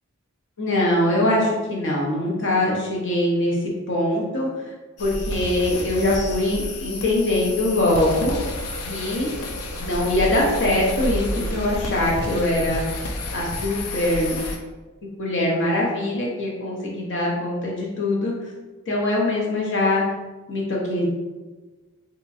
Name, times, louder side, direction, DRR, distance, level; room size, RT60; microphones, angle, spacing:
voice 1, 0.6-4.5 5.0-8.4 8.9-9.3 9.9-12.8 13.3-14.4 15.2-18.3 18.9-20.0 20.5-21.1, left 1 dB, 55° left, -3 dB, 1.0 m, -22 dB
sound 1, 5.0-14.6, left 1 dB, 80° left, 0.5 m, -30 dB
3.7 x 2.9 x 2.7 m, 1.3 s
head